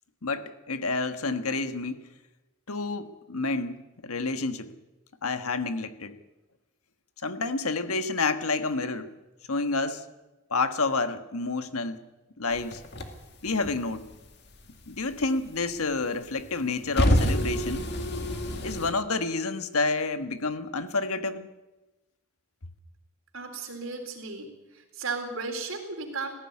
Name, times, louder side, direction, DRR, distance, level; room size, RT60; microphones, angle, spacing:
voice 1, 0.2-2.0 2.7-4.7 5.2-6.2 7.2-9.1 9.5-10.0 10.5-12.0 12.4-12.8 13.4-14.1 14.9-17.9 18.6-21.5, left 3 dB, 85° left, 10 dB, 1.4 m, -29 dB
sound 1, 12.5-14.3 14.5-15.9 16.3-18.9, equal, 50° left, 2.2 m, -27 dB
voice 2, 23.3-24.5 24.7-26.3, right 4 dB, 70° right, 3 dB, 4.0 m, -35 dB
19.0 x 15.0 x 9.7 m, 1.1 s
head